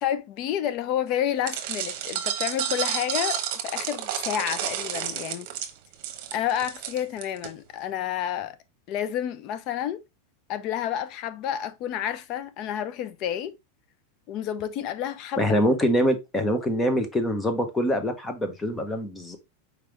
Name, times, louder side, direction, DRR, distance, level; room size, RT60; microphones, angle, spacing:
voice 1, 0.0-5.5 6.3-8.6 8.9-10.0 10.5-13.5 14.3-15.5, left 10 dB, 45° left, 0.6 m, -30 dB
sound 1, 1.5-7.5, right 10 dB, 55° right, 1.1 m, -31 dB
voice 2, 15.4-19.4, equal, 10° left, 1.1 m, -24 dB
4.8 x 3.4 x 3.2 m
supercardioid pair, 140°, 0 cm